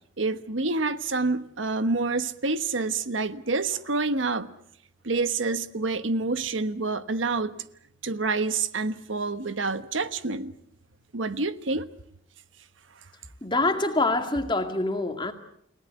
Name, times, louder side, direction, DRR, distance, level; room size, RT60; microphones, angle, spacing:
voice 1, 0.2-4.5 5.0-7.7 8.0-10.5 11.1-11.9, right 3 dB, 85° right, 12 dB, 1.3 m, -27 dB
voice 2, 13.4-15.3, left 2 dB, 25° left, 6 dB, 2.1 m, -25 dB
30.0 x 18.0 x 8.2 m, 0.72 s
head